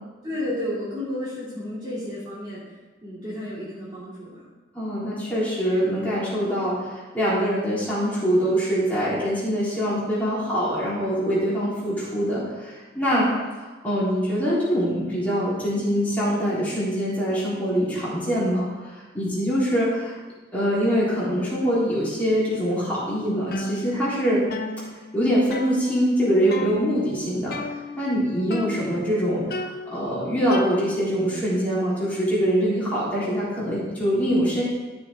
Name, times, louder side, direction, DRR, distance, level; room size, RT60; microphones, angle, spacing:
voice 1, 0.2-2.6 3.0-4.4, left 1 dB, 25° right, -8 dB, 2.7 m, -32 dB
voice 2, 4.7-13.3 13.6-20.1 20.5-24.4 25.1-27.5 28.0-34.6, equal, 10° left, -9 dB, 3.6 m, -24 dB
sound 1, 23.5-24.2 24.5-26.2 26.5-27.1 27.5-28.2 28.5-29.1 29.5-31.2, left 1 dB, 55° left, 0.7 m, -34 dB
12.5 x 7.0 x 3.6 m, 1.3 s
head